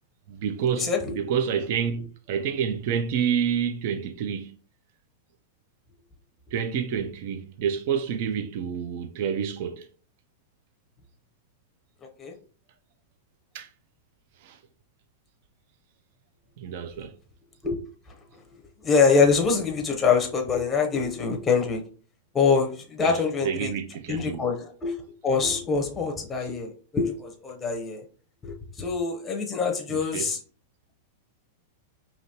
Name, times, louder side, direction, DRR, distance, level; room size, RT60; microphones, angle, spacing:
voice 1, 0.3-4.5 6.5-9.9 13.5-13.7 14.4-14.6 16.6-17.1 23.0-24.5 26.4-26.5 29.9-30.3, right 7 dB, 50° right, 0.5 m, -28 dB
voice 2, 18.8-21.8 22.3-23.7 24.1-25.0 25.2-28.0 28.4-30.4, left 5 dB, 15° left, 0.7 m, -24 dB
4.9 x 2.9 x 2.8 m
supercardioid pair, 160°, 0 cm